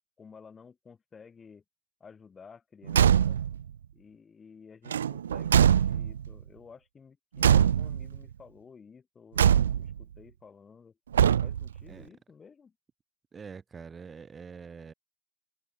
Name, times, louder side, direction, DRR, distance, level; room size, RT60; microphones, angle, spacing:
voice 1, 0.2-1.6 2.0-3.4 3.9-11.0 11.4-12.7, left 5 dB, 15° left, 5.6 m, -53 dB
Car / Truck / Slam, 2.9-3.6 4.9-6.3 7.4-8.2 9.4-10.0 11.1-11.8, right 9 dB, 65° right, 0.3 m, -23 dB
voice 2, 13.3-14.9, right 5 dB, 15° right, 2.0 m, -45 dB
figure-of-eight pair, 90°, 0 cm